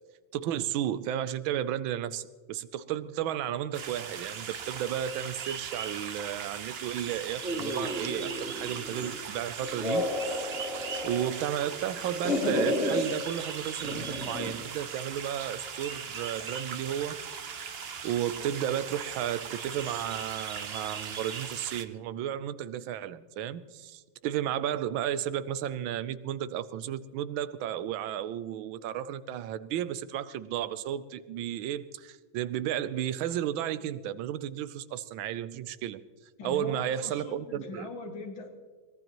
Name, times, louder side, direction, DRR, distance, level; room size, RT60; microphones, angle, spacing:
voice 1, 0.3-10.6 11.0-17.2 18.0-36.0 36.4-37.9, right 10 dB, 90° right, 15 dB, 1.4 m, -33 dB
sound 1, 3.7-21.8, right 6 dB, 60° right, 0.6 m, -39 dB
sound 2, 7.4-9.2 9.6-11.3 11.6-13.1 13.8-14.6, left 1 dB, 40° left, 2.8 m, -32 dB
voice 2, 36.4-38.5, left 3 dB, 85° left, 3 dB, 2.7 m, -41 dB
23.0 x 18.5 x 3.0 m, 1.5 s
omnidirectional pair, 2.1 m